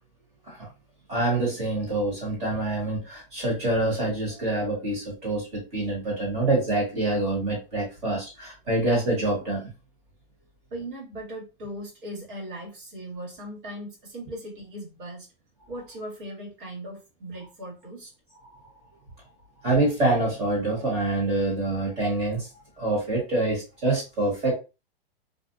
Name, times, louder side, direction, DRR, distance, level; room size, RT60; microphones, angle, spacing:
voice 1, 1.1-9.7 19.6-22.5 22.8-24.6, right 2 dB, 20° right, -3 dB, 1.3 m, -26 dB
voice 2, 10.7-15.3 15.7-18.1, right 1 dB, 55° right, -2 dB, 1.5 m, -38 dB
2.5 x 2.2 x 2.6 m, 0.29 s
hypercardioid pair, 160°, 30 cm